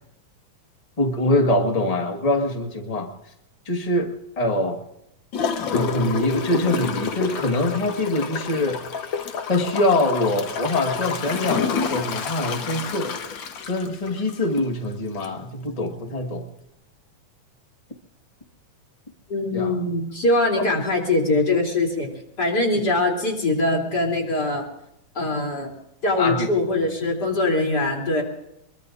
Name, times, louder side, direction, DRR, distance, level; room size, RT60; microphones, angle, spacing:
voice 1, 1.0-3.1 3.6-4.8 5.7-8.8 9.5-13.1 13.7-16.5 19.5-19.8 20.5-20.7 26.2-26.5, left 1 dB, 45° left, 2 dB, 0.4 m, -24 dB
Gurgling / Toilet flush, 5.3-14.7 15.2-15.3, left 6 dB, 75° left, 1.1 m, -28 dB
voice 2, 19.3-22.1 22.4-24.7 25.2-25.7 26.0-28.2, left 2 dB, 30° left, 0 dB, 3.5 m, -22 dB
24.0 x 22.5 x 2.6 m, 0.80 s
omnidirectional pair, 3.7 m